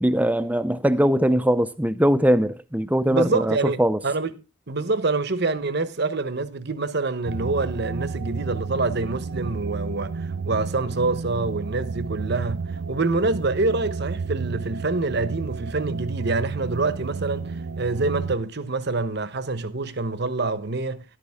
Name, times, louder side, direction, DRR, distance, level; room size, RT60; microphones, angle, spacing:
voice 1, 0.0-4.0, equal, 5° right, 0.6 m, -21 dB
voice 2, 3.1-4.4 4.7-21.0, right 3 dB, 50° right, 1.0 m, -26 dB
sound 1, 7.3-18.4, right 4 dB, 75° right, 0.5 m, -31 dB
12.5 x 11.5 x 3.6 m
head